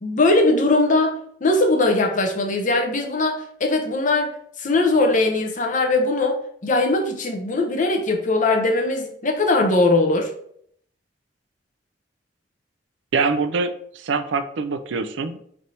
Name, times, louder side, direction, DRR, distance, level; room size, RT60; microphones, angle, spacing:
voice 1, 0.0-1.1 1.4-10.3, left 2 dB, 45° left, 3 dB, 0.7 m, -20 dB
voice 2, 13.1-15.4, right 4 dB, 85° right, 10 dB, 0.4 m, -24 dB
3.3 x 2.7 x 4.2 m, 0.66 s
head